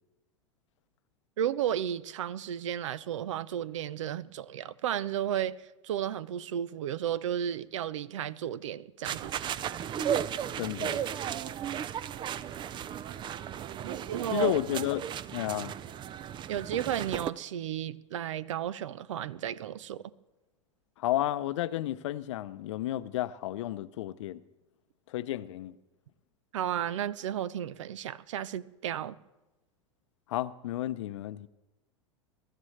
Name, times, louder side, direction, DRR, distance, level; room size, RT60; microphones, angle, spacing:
voice 1, 1.4-9.5 13.8-14.5 16.5-20.0 26.5-29.2, right 10 dB, 70° right, 0.6 m, -33 dB
sound 1, 9.0-17.3, right 9 dB, 30° right, 0.5 m, -35 dB
voice 2, 10.6-11.0 14.3-15.0 15.3-15.7 21.0-24.4 25.1-25.8 30.3-31.5, left 14 dB, 65° left, 0.7 m, -32 dB
23.0 x 12.5 x 3.2 m
hypercardioid pair, 95°, 16 cm